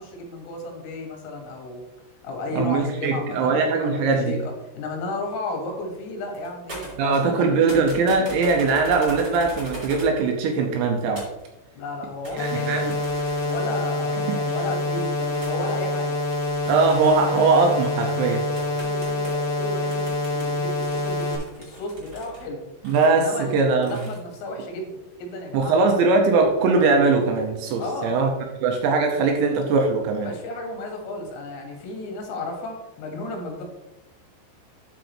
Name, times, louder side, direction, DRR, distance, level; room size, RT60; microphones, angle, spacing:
voice 1, 0.0-1.8 2.2-7.9 11.8-12.8 13.5-16.2 17.2-17.5 18.6-22.6 23.1-26.0 27.8-28.1 30.2-33.6, left 2 dB, 80° left, 1 dB, 4.2 m, -33 dB
voice 2, 2.6-4.4 7.0-11.2 12.4-12.9 14.3-14.4 16.7-18.5 22.8-24.0 25.5-28.3 28.6-30.3, right 4 dB, 80° right, 2 dB, 2.8 m, -21 dB
sound 1, 6.0-6.1 6.3-7.4 7.7-10.2 11.2-11.4 12.2-13.7 14.6-15.6 16.3-17.4 18.1-18.2 18.6-19.5 19.9-22.4 22.8-23.1 23.8-24.2, right 2 dB, 35° right, 1.7 m, -41 dB
sound 2, 12.4-21.4, left 2 dB, 60° left, 2.8 m, -26 dB
12.0 x 5.1 x 3.1 m, 0.97 s
omnidirectional pair, 5.7 m